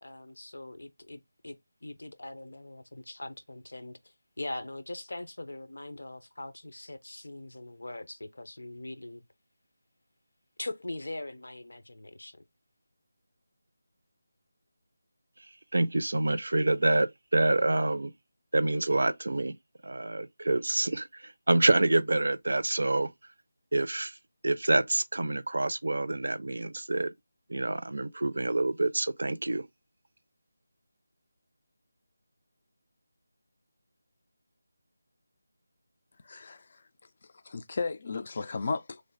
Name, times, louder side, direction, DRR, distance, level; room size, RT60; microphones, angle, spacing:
voice 1, 0.0-9.2 10.6-12.4, left 2 dB, 85° left, 0.7 m, -41 dB
voice 2, 15.7-18.1 18.5-19.6 19.8-21.1 21.5-23.1 23.7-24.1 24.4-27.1 27.5-29.7, right 2 dB, 75° right, 0.4 m, -27 dB
voice 3, 36.2-36.8 37.4-39.0, left 4 dB, 35° left, 0.4 m, -34 dB
3.3 x 2.1 x 3.8 m
figure-of-eight pair, 175°, 0 cm